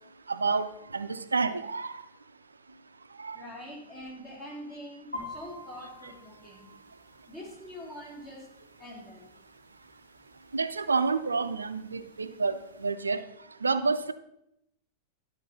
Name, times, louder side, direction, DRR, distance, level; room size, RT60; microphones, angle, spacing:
voice 1, 0.3-1.9 3.2-3.4 10.5-13.2 13.6-14.1, right 4 dB, 75° right, 12 dB, 0.4 m, -29 dB
voice 2, 3.3-6.7 7.3-8.5 8.8-9.3, equal, 25° left, -3 dB, 3.5 m, -44 dB
sound 1, 5.1-12.9, left 2 dB, 80° left, 3.0 m, -49 dB
11.5 x 4.5 x 5.6 m, 0.81 s
figure-of-eight pair, 90°, 0 cm